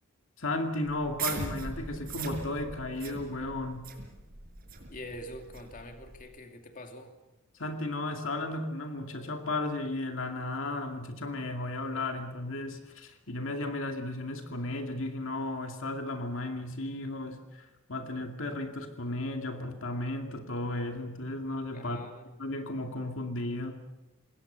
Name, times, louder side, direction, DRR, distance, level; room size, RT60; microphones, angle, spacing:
voice 1, 0.4-3.9 7.6-22.0 22.4-23.8, left 2 dB, 60° left, 4 dB, 2.4 m, -34 dB
sound 1, 0.8-6.2, right 4 dB, 45° right, 5.9 m, -40 dB
voice 2, 4.9-7.1 21.7-22.4, left 1 dB, 40° left, 4 dB, 2.6 m, -44 dB
27.0 x 21.0 x 6.9 m, 1.1 s
head